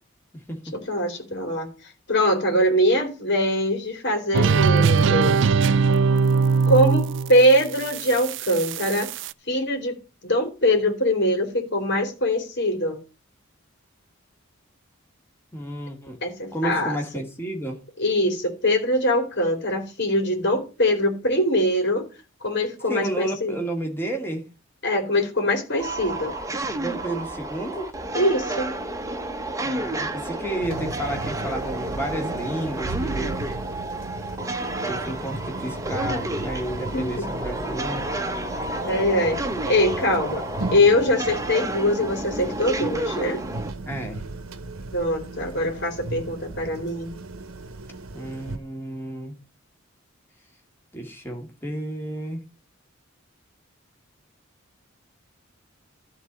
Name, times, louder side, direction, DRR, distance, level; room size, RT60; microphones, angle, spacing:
voice 1, 0.9-1.7 2.1-5.4 6.6-9.1 9.5-10.0 10.2-13.0 16.2-17.0 18.0-22.0 22.4-23.6 24.8-26.3 28.1-28.7 36.9-37.3 38.8-39.4 39.6-40.4 40.7-43.4 44.9-47.1, left 1 dB, 55° left, 3.3 m, -22 dB
sound 1, 4.3-9.3, right 5 dB, 60° right, 0.4 m, -21 dB
voice 2, 15.5-16.2 16.5-17.8 22.9-24.4 26.8-27.9 29.6-33.4 34.8-38.1 43.8-44.2 48.1-49.4 50.9-52.4, right 1 dB, 10° left, 2.1 m, -31 dB
sound 2, 25.8-43.7, right 1 dB, 15° right, 1.0 m, -31 dB
sound 3, 30.6-48.6, right 2 dB, 90° right, 1.0 m, -36 dB
12.5 x 4.1 x 8.0 m
head